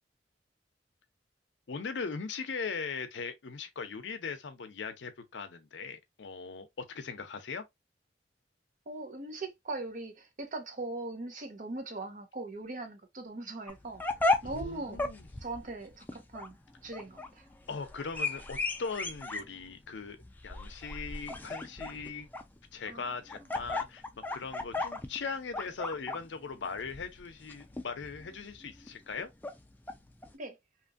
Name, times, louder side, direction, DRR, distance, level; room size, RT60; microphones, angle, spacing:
voice 1, 1.7-7.6 14.4-15.2 17.7-20.2 20.4-22.3 22.7-29.3, left 5 dB, 85° left, 0.6 m, -39 dB
voice 2, 8.9-14.0 14.4-15.1 15.4-17.5 22.9-23.1 23.4-23.5 30.3-30.6, right 2 dB, 45° right, 0.7 m, -40 dB
sound 1, 13.7-30.3, left 2 dB, 10° left, 0.3 m, -36 dB
2.9 x 2.5 x 2.3 m
head